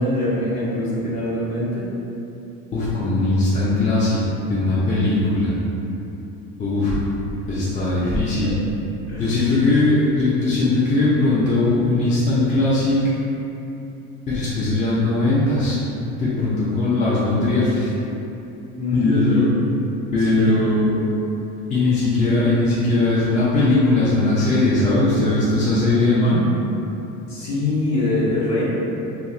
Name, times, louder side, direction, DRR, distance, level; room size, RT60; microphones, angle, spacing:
voice 1, 0.0-1.9 8.0-8.5 9.1-9.5 18.7-19.5 20.2-20.5 27.3-28.8, left 1 dB, 40° left, -7 dB, 1.0 m, -24 dB
voice 2, 2.7-4.2 4.5-5.5 6.6-7.0 7.5-8.6 9.2-13.1 14.3-17.9 18.9-19.5 20.1-20.9 21.7-26.4, left 2 dB, 20° left, -9 dB, 0.5 m, -19 dB
2.5 x 2.3 x 2.9 m, 2.9 s
hypercardioid pair, 70°, 42 cm